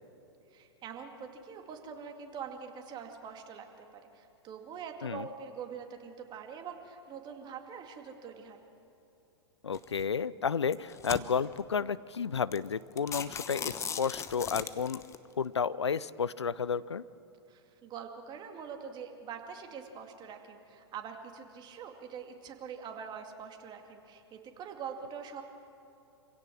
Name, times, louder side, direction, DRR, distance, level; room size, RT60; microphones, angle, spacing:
voice 1, 0.5-8.6 17.5-25.4, right 7 dB, 30° right, 4 dB, 2.3 m, -44 dB
voice 2, 9.6-15.0 15.4-17.0, left 6 dB, 90° left, 19 dB, 0.5 m, -32 dB
sound 1, 9.7-10.0 10.6-11.6 12.1-12.2 12.5-12.7 13.0-15.2, left 7 dB, 20° left, 1.0 m, -38 dB
26.5 x 17.0 x 6.2 m, 2.9 s
hypercardioid pair, 105°, 14 cm